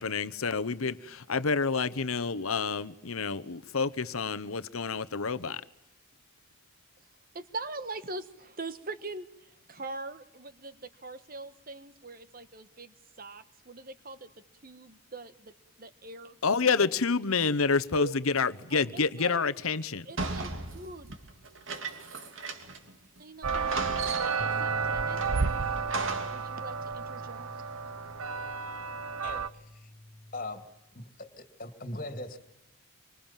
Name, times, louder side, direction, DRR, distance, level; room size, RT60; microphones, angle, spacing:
voice 1, 0.0-5.6 16.4-20.1, left 4 dB, 80° left, 1.0 m, -28 dB
voice 2, 7.3-14.3 14.6-16.4 17.9-18.1 18.7-19.4 20.0-21.1 23.2-27.5, right 2 dB, 40° right, 1.4 m, -43 dB
sound 1, 20.2-22.9 23.2-23.3 23.5-24.6 25.2-26.5, right 3 dB, 65° right, 2.8 m, -36 dB
sound 2, 23.4-29.5, right 5 dB, 85° right, 1.0 m, -32 dB
sound 3, 24.4-30.7, left 1 dB, 15° left, 1.5 m, -45 dB
voice 3, 29.2-29.9 30.3-30.6 30.9-32.4, left 2 dB, 40° left, 2.6 m, -40 dB
25.5 x 25.0 x 7.4 m
head